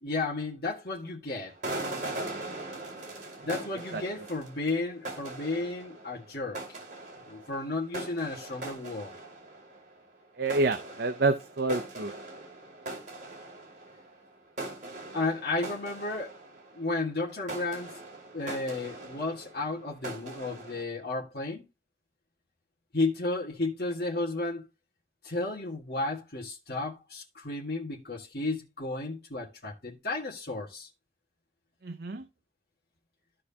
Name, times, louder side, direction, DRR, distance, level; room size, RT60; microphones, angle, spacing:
voice 1, 0.0-1.5 3.4-6.6 7.3-9.1 15.1-16.4 16.7-18.0 18.3-21.6 22.9-24.7 25.2-30.9, left 2 dB, 65° left, 1.8 m, -33 dB
sound 1, 1.5-10.2 10.5-17.0 17.3-20.8, right 2 dB, 45° right, 2.6 m, -41 dB
voice 2, 10.4-12.1 31.8-32.2, right 3 dB, 70° right, 0.7 m, -28 dB
14.0 x 4.8 x 2.8 m
head